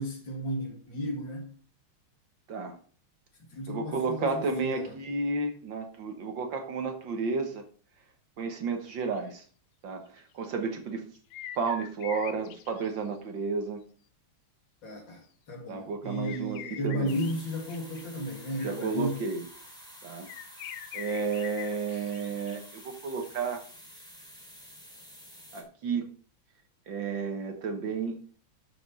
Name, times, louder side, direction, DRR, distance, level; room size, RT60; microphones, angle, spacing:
voice 1, 0.0-1.5 3.5-4.9 14.8-15.2 15.5-19.2, equal, 55° left, 3.0 m, -34 dB
voice 2, 3.7-7.6 8.4-9.5 9.8-11.0 11.6-13.8 15.7-17.2 18.6-19.4 20.0-20.3 20.9-23.6 25.5-26.1 26.9-28.2, right 4 dB, 60° right, 1.9 m, -32 dB
sound 1, 9.1-9.3 10.3-10.5 11.1-13.0 16.2-18.0 20.3-22.9 23.2-23.4, left 11 dB, 75° left, 1.6 m, -44 dB
sound 2, 17.1-25.6, equal, ahead, 3.0 m, -50 dB
11.5 x 7.0 x 4.2 m
omnidirectional pair, 2.4 m